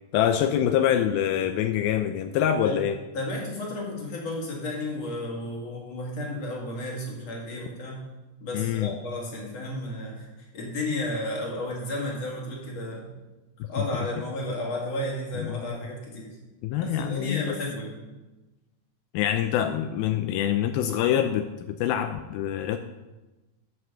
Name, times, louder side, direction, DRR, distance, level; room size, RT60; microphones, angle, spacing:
voice 1, 0.1-3.0 8.5-8.9 13.6-13.7 15.4-15.7 16.6-17.6 19.1-22.8, left 10 dB, 80° left, 9 dB, 2.2 m, -25 dB
voice 2, 3.1-8.0 8.4-13.1 13.7-16.3 16.8-18.0, left 1 dB, 45° left, -2 dB, 2.9 m, -33 dB
11.0 x 5.8 x 6.7 m, 1.1 s
omnidirectional pair, 4.6 m